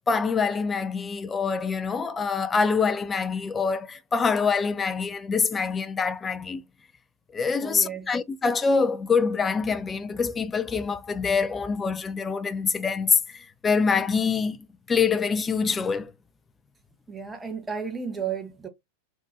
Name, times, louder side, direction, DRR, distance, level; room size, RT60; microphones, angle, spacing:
voice 1, 0.1-6.6 7.3-14.6 14.9-16.1, left 5 dB, 15° left, 0.3 m, -25 dB
voice 2, 7.6-8.1 17.1-18.7, right 6 dB, 10° right, 0.7 m, -33 dB
3.6 x 2.4 x 2.7 m
figure-of-eight pair, 90°, 0 cm